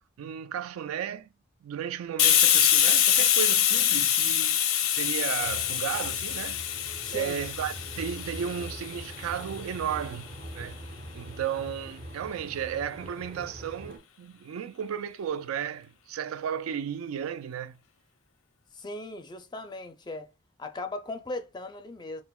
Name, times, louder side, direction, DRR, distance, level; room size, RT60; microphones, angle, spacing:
voice 1, 0.2-1.3 1.6-6.6 7.1-10.3 10.5-10.8 11.1-17.8, right 8 dB, 85° right, 0.3 m, -34 dB
Hiss, 2.2-9.6, left 10 dB, 80° left, 0.6 m, -25 dB
sound 1, 5.4-14.0, equal, 50° right, 0.8 m, -43 dB
voice 2, 7.0-7.4 18.7-20.3 20.6-22.2, left 2 dB, 20° left, 0.4 m, -38 dB
5.6 x 2.1 x 2.3 m
head